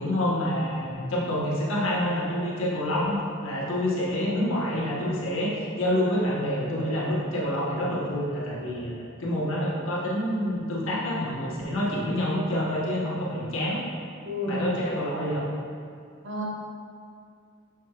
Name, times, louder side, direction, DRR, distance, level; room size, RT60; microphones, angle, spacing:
voice 1, 0.0-13.8 14.5-15.5, left 1 dB, 75° left, -6 dB, 1.3 m, -27 dB
voice 2, 14.3-14.8 16.2-16.5, left 1 dB, 60° right, -4 dB, 1.1 m, -30 dB
6.4 x 6.4 x 2.4 m, 2.3 s
head